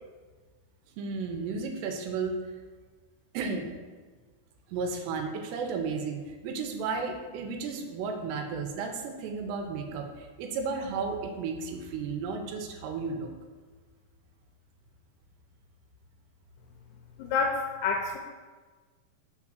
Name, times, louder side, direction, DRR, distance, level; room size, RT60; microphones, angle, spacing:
voice 1, 1.0-2.4 3.3-3.7 4.7-13.3, right 4 dB, 90° right, 4 dB, 2.8 m, -33 dB
voice 2, 17.2-18.2, left 4 dB, 85° left, 2 dB, 2.8 m, -28 dB
6.1 x 3.7 x 6.0 m, 1.4 s
omnidirectional pair, 4.9 m